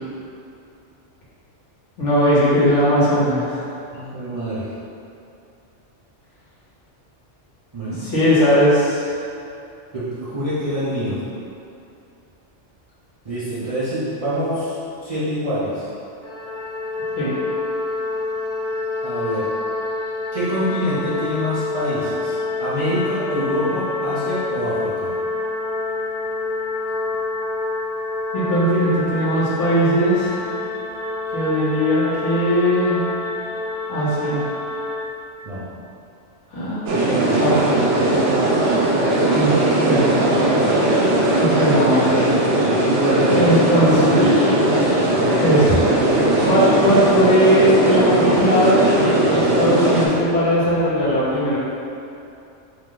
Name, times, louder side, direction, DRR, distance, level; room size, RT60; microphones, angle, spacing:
voice 1, 2.0-3.6 7.8-9.0 17.2-17.3 28.3-30.4 31.3-33.0 33.9-34.5 36.5-36.8 37.4-38.0 39.3-40.6 41.4-42.4 43.3-44.3 45.4-51.6, equal, 80° left, -9 dB, 1.4 m, -19 dB
voice 2, 3.9-4.7 7.7-8.1 9.9-11.2 13.2-15.9 19.0-19.5 20.3-22.3 22.6-25.1 35.4-35.7 37.2-37.6 42.7-43.5, equal, 40° right, -10 dB, 0.6 m, -25 dB
sound 1, 16.2-35.0, left 3 dB, 45° left, 0.5 m, -27 dB
sound 2, 36.9-50.1, right 1 dB, 65° right, 0.9 m, -18 dB
3.7 x 2.9 x 3.8 m, 2.7 s
omnidirectional pair, 1.2 m